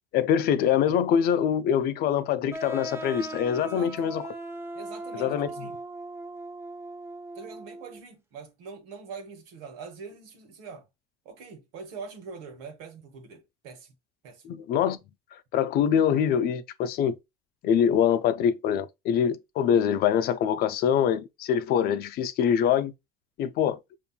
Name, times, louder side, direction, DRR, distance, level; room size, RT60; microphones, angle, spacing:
voice 1, 0.1-4.2 5.2-5.7 14.4-15.0 15.5-17.2 17.6-22.9 23.4-23.8, left 8 dB, 50° left, 0.5 m, -24 dB
sound 1, 2.5-8.0, right 2 dB, 15° right, 0.5 m, -38 dB
voice 2, 3.6-4.2 4.7-5.8 7.3-10.9 11.2-13.9 14.2-14.4, right 5 dB, 85° right, 1.2 m, -43 dB
5.4 x 2.6 x 2.3 m
cardioid pair, 130°, 20 cm